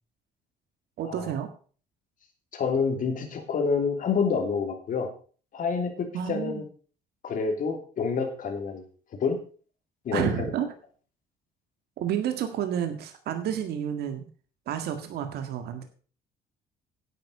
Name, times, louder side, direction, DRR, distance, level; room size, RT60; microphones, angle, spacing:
voice 1, 1.0-1.5 6.1-6.6 10.1-10.7 12.0-14.3 14.7-15.8, right 9 dB, 70° right, 7 dB, 1.8 m, -30 dB
voice 2, 2.5-5.1 5.5-6.6 7.2-8.8 9.1-9.4 10.0-10.5, left 5 dB, 50° left, 5 dB, 3.1 m, -28 dB
10.5 x 8.6 x 5.6 m, 0.41 s
cardioid pair, 110°, 17 cm